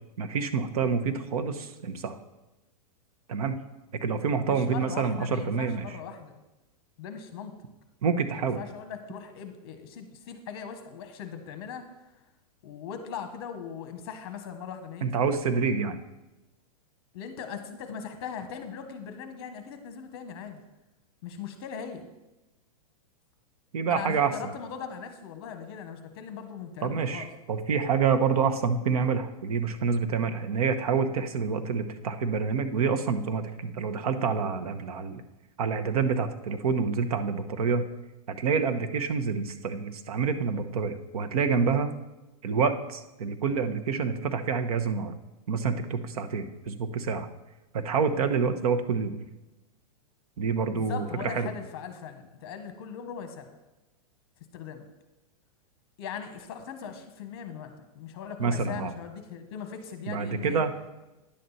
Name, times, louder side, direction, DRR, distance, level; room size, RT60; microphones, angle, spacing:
voice 1, 0.2-2.2 3.3-3.6 4.0-5.8 8.0-8.6 15.0-16.0 23.7-24.5 26.8-35.2 35.6-37.8 38.3-41.9 42.4-45.1 45.5-47.3 47.7-49.2 50.4-51.5 58.4-58.9 60.1-60.7, right 5 dB, 70° right, 8 dB, 0.9 m, -27 dB
voice 2, 4.4-6.4 7.0-7.5 8.3-12.2 12.6-15.3 15.6-15.7 17.1-20.6 21.2-22.1 23.9-27.3 50.7-53.5 54.5-54.9 56.0-60.6, left 7 dB, 40° left, 7 dB, 1.2 m, -40 dB
10.0 x 7.7 x 4.1 m, 1.0 s
supercardioid pair, 170°, 20 cm